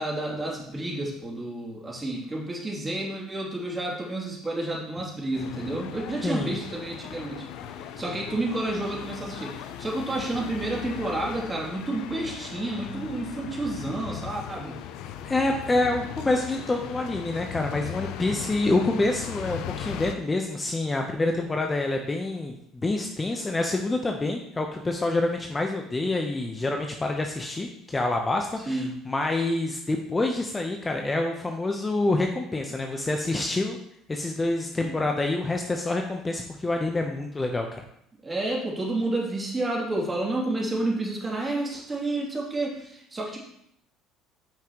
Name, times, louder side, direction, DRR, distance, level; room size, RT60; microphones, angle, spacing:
voice 1, 0.0-7.5 8.0-14.8 28.6-29.0 34.8-35.2 38.2-43.4, right 2 dB, 20° right, -3 dB, 2.9 m, -30 dB
sound 1, 5.3-20.2, left 9 dB, 65° left, 0.6 m, -38 dB
voice 2, 6.2-6.6 15.2-33.8 34.1-37.8, left 2 dB, 20° left, 3 dB, 0.9 m, -27 dB
8.8 x 5.9 x 3.1 m, 0.73 s
hypercardioid pair, 65°, 0 cm